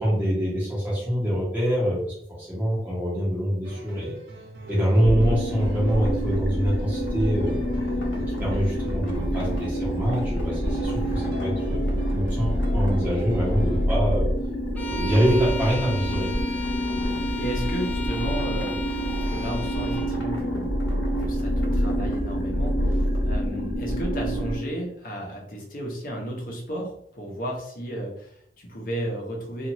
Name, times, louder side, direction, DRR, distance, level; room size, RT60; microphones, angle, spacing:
voice 1, 0.0-4.1 4.7-7.6 8.1-11.8 12.1-14.3 14.7-16.3, equal, 10° right, -8 dB, 1.2 m, -25 dB
sound 1, 3.6-13.9, right 1 dB, 70° right, 0.6 m, -39 dB
sound 2, 5.0-24.6, equal, 90° left, 0.8 m, -27 dB
Bowed string instrument, 14.8-20.2, left 2 dB, 10° left, 0.4 m, -36 dB
voice 2, 17.4-19.0 19.3-20.7 21.2-29.7, right 1 dB, 50° left, -1 dB, 0.8 m, -33 dB
2.6 x 2.5 x 2.9 m, 0.67 s
head